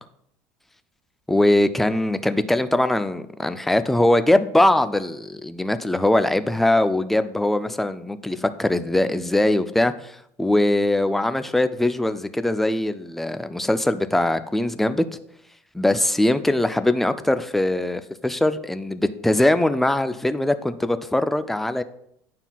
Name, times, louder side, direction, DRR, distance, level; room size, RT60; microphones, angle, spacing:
voice 1, 1.3-15.0 15.7-21.8, left 1 dB, 5° left, 11 dB, 0.3 m, -21 dB
9.1 x 5.6 x 2.3 m, 0.73 s
cardioid pair, 140°, 7 cm